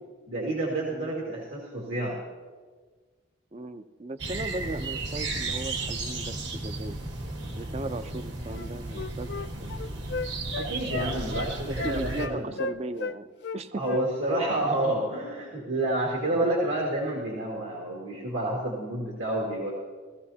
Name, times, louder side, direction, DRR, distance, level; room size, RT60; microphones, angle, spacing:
voice 1, 0.3-2.2 10.6-12.6 13.7-19.7, right 1 dB, 85° right, -3 dB, 2.1 m, -29 dB
voice 2, 3.5-7.0 7.5-9.8 11.6-14.0 16.3-16.5, right 2 dB, 30° right, 11 dB, 0.5 m, -37 dB
sound 1, 4.2-12.3, right 2 dB, 65° right, 1.3 m, -34 dB
Wind instrument woodwind instrument, 8.5-13.2 13.4-14.5 14.7-14.9, left 3 dB, 55° left, 0.3 m, -35 dB
17.0 x 15.0 x 2.8 m, 1.4 s
head